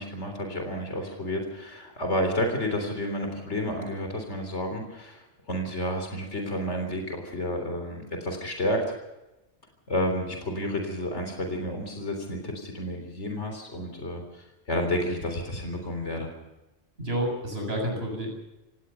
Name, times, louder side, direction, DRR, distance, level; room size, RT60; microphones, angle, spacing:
voice 1, 0.0-8.9 9.9-16.3, equal, 75° left, 4 dB, 4.0 m, -31 dB
voice 2, 17.0-18.3, equal, 60° right, 2 dB, 7.6 m, -29 dB
28.0 x 17.5 x 5.7 m, 0.99 s
omnidirectional pair, 1.2 m